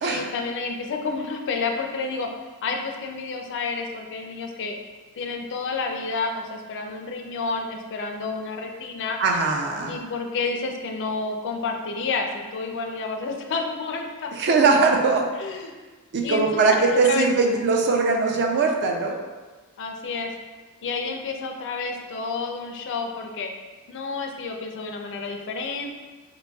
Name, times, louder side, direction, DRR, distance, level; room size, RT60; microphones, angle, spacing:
voice 1, 0.0-2.3 2.6-4.8 5.2-9.2 9.9-14.3 15.4-15.7 16.2-17.3 19.8-20.3 20.8-23.5 23.9-25.9, left 4 dB, 55° left, 3 dB, 0.4 m, -30 dB
voice 2, 9.2-10.0 14.4-15.3 16.1-19.2, right 4 dB, 50° right, 2 dB, 0.4 m, -21 dB
3.9 x 2.9 x 2.3 m, 1.3 s
head